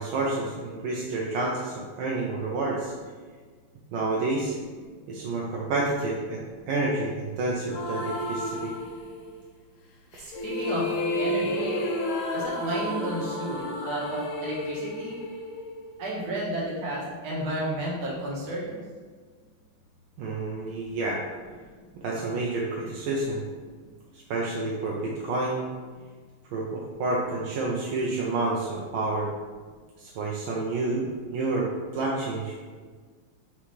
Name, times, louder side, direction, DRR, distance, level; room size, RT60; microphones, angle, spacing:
voice 1, 0.0-2.9 3.9-4.6 5.1-8.7 20.2-21.2 22.0-23.5 24.1-25.6 26.5-29.3 30.0-32.5, right 2 dB, 80° right, -3 dB, 1.3 m, -29 dB
sound 1, 7.7-9.4 10.1-16.2, left 1 dB, 90° left, 1.5 m, -31 dB
voice 2, 10.2-10.9 11.2-11.8 12.3-15.2 16.0-18.8, right 1 dB, 55° right, -5 dB, 1.5 m, -32 dB
4.5 x 3.6 x 3.0 m, 1.5 s
omnidirectional pair, 2.3 m